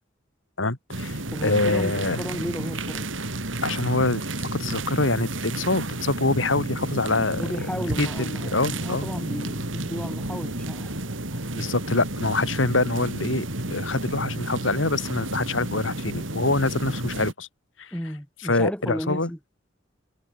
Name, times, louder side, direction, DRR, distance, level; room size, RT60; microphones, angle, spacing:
voice 1, 0.6-2.2 3.6-4.2 4.5-7.4 8.0-8.1 8.4-9.1 11.5-17.5 17.8-17.9 18.5-19.3, left 2 dB, 80° left, 2.7 m, -25 dB
sound 1, 0.9-17.3, right 2 dB, 80° right, 5.0 m, -31 dB
voice 2, 1.3-3.1 7.4-11.6 17.9-19.4, equal, 5° left, 6.4 m, -34 dB
head